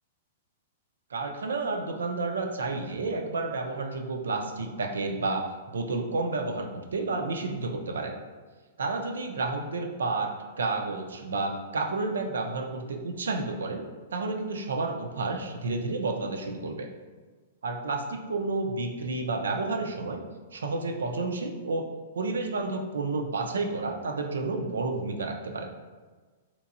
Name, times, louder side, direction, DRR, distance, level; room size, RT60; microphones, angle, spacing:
voice 1, 1.1-6.7 6.9-8.2 8.8-13.8 14.1-16.9 17.6-20.2 20.5-21.9 22.1-25.7, right 3 dB, 85° right, 4 dB, 0.4 m, -30 dB
3.4 x 3.0 x 2.5 m, 1.4 s
hypercardioid pair, 125°, 0 cm